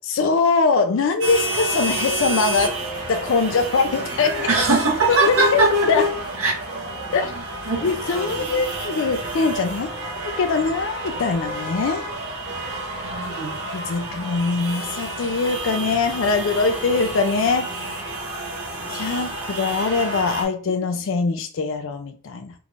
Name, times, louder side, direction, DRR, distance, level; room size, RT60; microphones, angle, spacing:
voice 1, 0.0-2.8 3.1-4.5 5.1-6.1 7.1-7.3 7.8-9.9 10.4-12.0 13.7-17.7 18.9-22.5, left 4 dB, 65° left, 6 dB, 0.4 m, -22 dB
sound 1, 1.2-20.4, right 1 dB, 55° right, 1.1 m, -29 dB
voice 2, 4.5-5.7 6.4-6.5 7.7-7.8 8.3-8.4 13.1-13.5 19.1-19.3, right 3 dB, 90° right, -4 dB, 0.9 m, -21 dB
3.5 x 2.4 x 3.2 m, 0.42 s
head